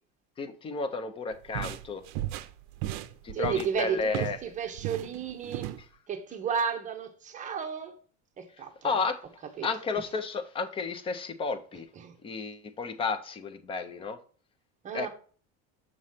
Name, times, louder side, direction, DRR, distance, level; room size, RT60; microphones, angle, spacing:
voice 1, 0.4-2.0 3.2-4.4 8.8-9.2 9.6-11.9 12.2-14.2 14.9-15.1, left 4 dB, 15° left, 0.5 m, -32 dB
sound 1, 1.3-4.5 4.8-5.8, right 14 dB, 55° right, 0.6 m, -35 dB
voice 2, 3.3-5.7 6.1-7.9 8.4-9.0 9.6-9.7 12.0-12.1 14.8-15.1, right 7 dB, 25° right, 0.9 m, -33 dB
7.5 x 3.1 x 5.5 m
cardioid pair, 170°, 33 cm